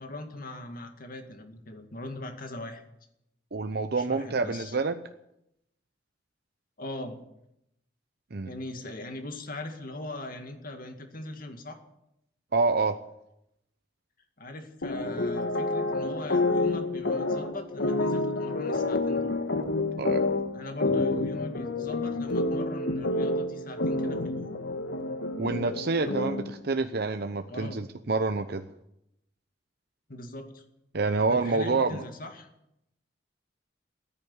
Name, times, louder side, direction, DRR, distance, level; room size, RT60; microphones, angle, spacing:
voice 1, 0.0-2.8 3.9-4.8 6.8-7.2 8.5-11.8 14.4-19.4 20.5-24.6 27.5-27.8 30.1-30.6 31.3-32.5, left 1 dB, 55° left, 5 dB, 2.1 m, -40 dB
voice 2, 3.5-5.0 8.3-8.5 12.5-13.0 20.0-20.2 20.9-21.0 25.4-28.7 30.9-32.0, right 3 dB, 60° right, 8 dB, 0.8 m, -27 dB
sound 1, 14.8-26.6, left 2 dB, 75° left, 1.4 m, -29 dB
14.0 x 10.5 x 9.8 m, 0.82 s
head